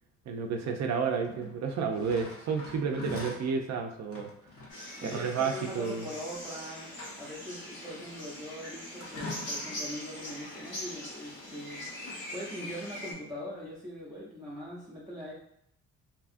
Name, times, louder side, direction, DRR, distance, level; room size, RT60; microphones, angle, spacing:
voice 1, 0.3-4.3 5.0-6.1, right 5 dB, 60° right, 4 dB, 0.4 m, -31 dB
sound 1, 1.2-3.5 4.0-4.8 6.3-6.4 6.8-7.5 9.0-9.9 11.1-11.7 12.0-12.2, left 2 dB, 50° left, 0.9 m, -43 dB
sound 2, 4.7-13.1, left 1 dB, 90° left, 1.3 m, -42 dB
voice 2, 5.0-6.9 7.2-11.9 12.3-15.3, equal, 10° right, -6 dB, 0.7 m, -41 dB
2.8 x 2.3 x 2.4 m, 0.78 s
cardioid pair, 90°, 30 cm